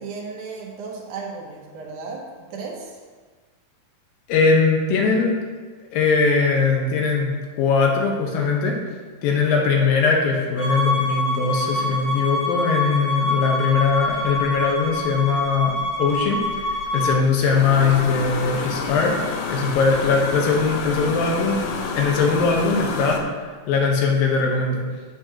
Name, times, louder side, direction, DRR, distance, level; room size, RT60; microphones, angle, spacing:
voice 1, 0.0-3.0, right 4 dB, 70° right, 0 dB, 2.2 m, -35 dB
voice 2, 4.3-5.4 5.9-8.8 9.2-19.2 19.5-21.6 21.9-24.9, left 4 dB, 75° left, 1 dB, 2.7 m, -20 dB
Bowed string instrument, 10.6-17.1, left 1 dB, 40° left, 2.6 m, -26 dB
sound 1, 13.8-23.2, left 5 dB, 90° left, 2.6 m, -31 dB
8.6 x 8.3 x 2.9 m, 1.4 s
omnidirectional pair, 4.3 m